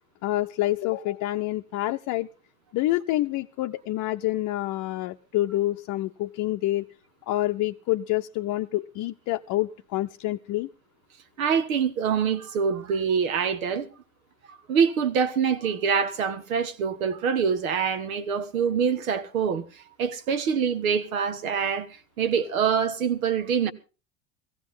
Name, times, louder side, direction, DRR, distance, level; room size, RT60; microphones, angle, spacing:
voice 1, 0.2-2.3 2.7-6.9 7.3-10.7, left 16 dB, 50° left, 0.7 m, -27 dB
voice 2, 11.4-13.9 14.5-19.6 20.0-21.9 22.2-23.7, right 7 dB, 90° right, 1.4 m, -25 dB
16.5 x 15.5 x 3.7 m
hypercardioid pair, 90°, 40 cm